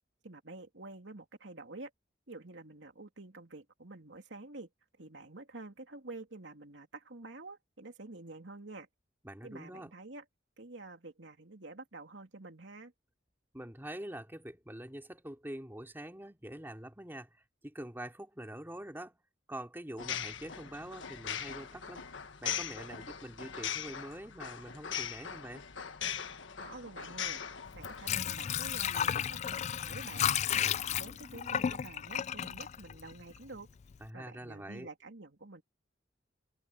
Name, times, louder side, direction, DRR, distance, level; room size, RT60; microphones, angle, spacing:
voice 1, 0.2-1.9 2.3-4.7 5.0-8.9 9.4-10.2 10.6-12.9 26.6-27.4 27.7-30.3 30.5-33.7 34.1-35.6, right 2 dB, 75° right, 2.8 m, -48 dB
voice 2, 9.2-9.9 13.5-17.3 17.6-19.2 19.5-22.1 22.4-25.6 34.0-34.9, right 1 dB, 10° right, 2.8 m, -45 dB
sound 1, 20.0-28.1, left 8 dB, 85° left, 1.5 m, -40 dB
Water / Sink (filling or washing), 27.7-33.5 33.9-34.0, left 9 dB, 35° left, 0.3 m, -33 dB
head